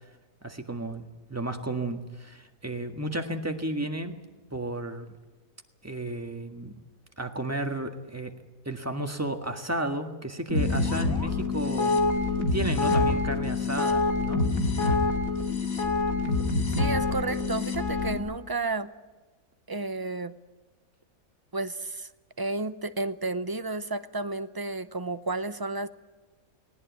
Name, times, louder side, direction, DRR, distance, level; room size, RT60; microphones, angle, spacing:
voice 1, 0.4-1.0 1.3-4.2 4.5-5.1 5.8-6.7 7.2-8.3 8.6-12.0 12.5-14.5, right 1 dB, 10° right, 5 dB, 1.7 m, -33 dB
sound 1, 10.5-18.2, left 3 dB, 80° left, 2.9 m, -26 dB
voice 2, 16.8-18.9 19.7-20.3 21.5-22.1 22.4-25.9, right 3 dB, 25° right, 12 dB, 0.4 m, -32 dB
19.0 x 18.5 x 9.5 m, 1.2 s
omnidirectional pair, 1.5 m